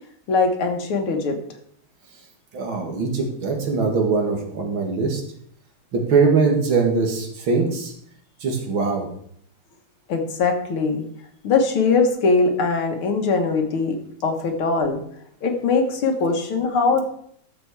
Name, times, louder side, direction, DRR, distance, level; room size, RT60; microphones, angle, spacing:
voice 1, 0.3-1.4 10.1-11.0 11.4-14.0 14.2-15.0 15.4-17.0, left 4 dB, 80° left, 4 dB, 2.3 m, -21 dB
voice 2, 2.5-5.2 5.9-7.9 8.4-9.1, right 4 dB, 70° right, 2 dB, 2.7 m, -21 dB
12.0 x 7.1 x 4.7 m, 0.66 s
omnidirectional pair, 2.3 m